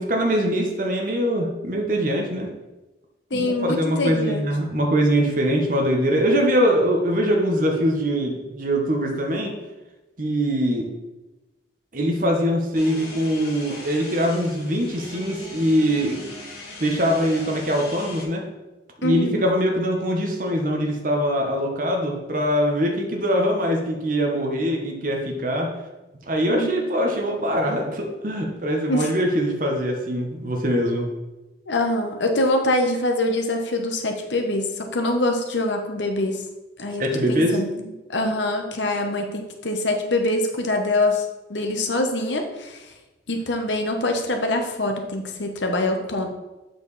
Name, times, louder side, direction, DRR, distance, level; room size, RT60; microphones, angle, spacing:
voice 1, 0.0-2.5 3.3-9.5 10.2-10.9 11.9-16.2 16.8-18.4 19.0-25.7 26.3-31.1 37.0-37.6, equal, 45° right, 1 dB, 1.1 m, -22 dB
voice 2, 3.3-4.5 19.0-19.4 26.5-26.8 28.9-29.1 31.7-36.4 36.8-42.8 43.3-46.3, left 1 dB, 75° left, 4 dB, 1.1 m, -24 dB
sound 1, 12.7-18.2, left 2 dB, 55° left, 2.6 m, -39 dB
8.0 x 4.8 x 4.1 m, 1.1 s
head